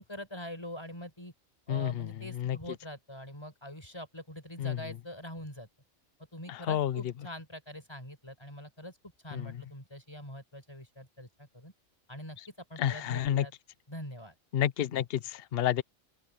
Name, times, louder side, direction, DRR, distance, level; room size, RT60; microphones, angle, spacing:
voice 1, 0.0-1.3 1.7-5.7 6.3-9.0 9.2-11.7 12.1-12.4 12.7-13.5 13.9-14.3, equal, 20° left, 5.2 m, -44 dB
voice 2, 1.7-2.6 4.6-4.8 6.5-7.0 9.3-9.5 12.8-13.5 14.5-15.8, left 10 dB, 50° left, 0.9 m, -30 dB
open air
omnidirectional pair, 1.4 m